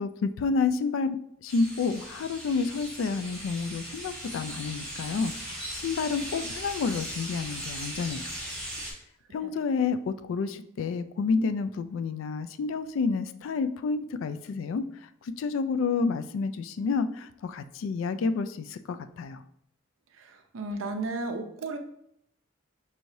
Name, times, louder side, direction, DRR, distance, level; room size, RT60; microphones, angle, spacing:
voice 1, 0.0-8.3 9.3-14.9 15.2-19.4, left 4 dB, 75° left, 11 dB, 0.3 m, -29 dB
sound 1, 1.5-8.9, equal, 5° left, 1.5 m, -38 dB
voice 2, 20.1-21.8, right 2 dB, 85° right, 6 dB, 0.6 m, -34 dB
5.5 x 3.1 x 2.6 m, 0.73 s
head